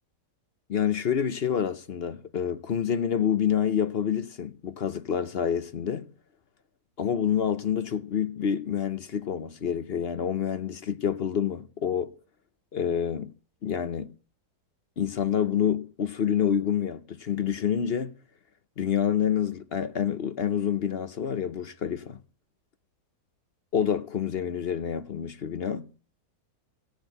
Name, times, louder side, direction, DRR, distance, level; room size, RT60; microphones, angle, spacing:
voice 1, 0.7-6.1 7.0-12.1 12.7-13.3 13.6-14.1 15.0-18.1 18.8-22.2 23.7-25.9, left 8 dB, 50° left, 0.8 m, -27 dB
17.0 x 6.4 x 7.9 m
omnidirectional pair, 1.7 m